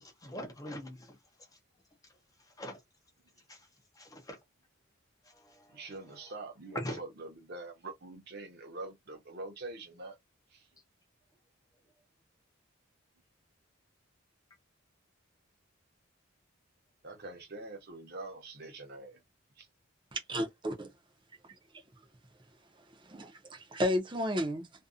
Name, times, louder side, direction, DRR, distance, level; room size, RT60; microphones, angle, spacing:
voice 1, 0.0-1.1 2.6-2.8 3.5-3.6 4.0-4.4 5.5-5.6 6.7-7.0, equal, 15° left, 0.6 m, -41 dB
voice 2, 5.7-10.2 10.5-10.7 17.0-19.2 19.6-19.7, right 2 dB, 50° right, 0.8 m, -44 dB
voice 3, 20.1-20.9 23.1-24.7, equal, 25° right, 0.6 m, -32 dB
2.6 x 2.3 x 2.4 m
head